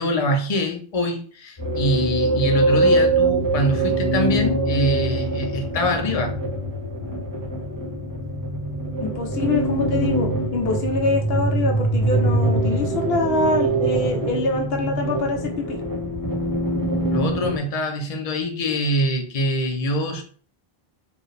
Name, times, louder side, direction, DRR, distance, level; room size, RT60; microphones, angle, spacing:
voice 1, 0.0-6.4 17.1-20.2, equal, 40° left, 0.8 m, -24 dB
sound 1, 1.6-17.6, right 2 dB, 20° left, 1.3 m, -23 dB
voice 2, 9.0-15.8, left 3 dB, 75° left, 0.8 m, -25 dB
4.5 x 2.5 x 3.3 m
omnidirectional pair, 1.1 m